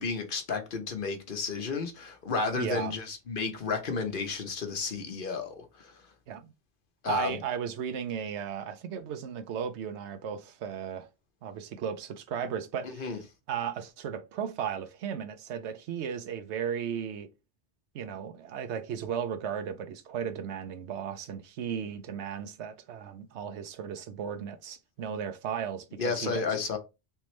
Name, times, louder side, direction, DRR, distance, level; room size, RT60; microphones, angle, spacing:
voice 1, 0.0-5.9 7.0-7.4 12.8-13.2 26.0-26.8, left 4 dB, 55° left, 1.0 m, -32 dB
voice 2, 2.6-2.9 6.3-6.5 7.1-11.1 11.4-13.2 13.5-17.3 17.9-26.4, right 8 dB, 85° right, 0.9 m, -35 dB
3.4 x 3.1 x 3.0 m
omnidirectional pair, 1.1 m